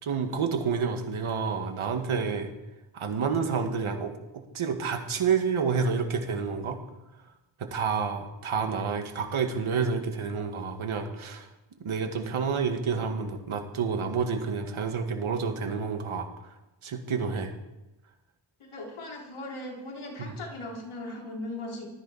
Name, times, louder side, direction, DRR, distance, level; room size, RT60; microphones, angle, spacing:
voice 1, 0.0-2.5 2.9-6.8 7.6-11.5 11.8-16.3 16.8-17.5 20.2-20.3, right 5 dB, 85° right, 4 dB, 2.1 m, -29 dB
voice 2, 18.6-21.9, left 1 dB, 85° left, -1 dB, 3.7 m, -38 dB
19.0 x 14.0 x 4.3 m, 0.99 s
cardioid pair, 55°, 48 cm